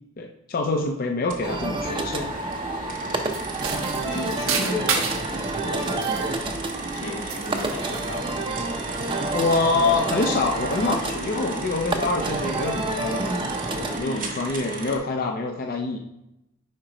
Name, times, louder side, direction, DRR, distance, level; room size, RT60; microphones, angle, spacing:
voice 1, 0.2-2.3 9.3-13.3 13.8-16.0, left 3 dB, 45° left, 2 dB, 0.5 m, -25 dB
sound 1, 1.3-15.0, right 3 dB, 40° right, 1.0 m, -36 dB
sound 2, 1.4-14.0, right 2 dB, 25° right, 0.6 m, -29 dB
sound 3, 3.3-5.3 5.8-7.0 7.3-8.2, right 5 dB, 75° right, 0.9 m, -30 dB
voice 2, 4.0-5.1 5.7-6.5 6.9-8.5 14.0-14.3, left 2 dB, 85° left, 1 dB, 1.2 m, -34 dB
4.8 x 4.4 x 4.9 m, 0.88 s
head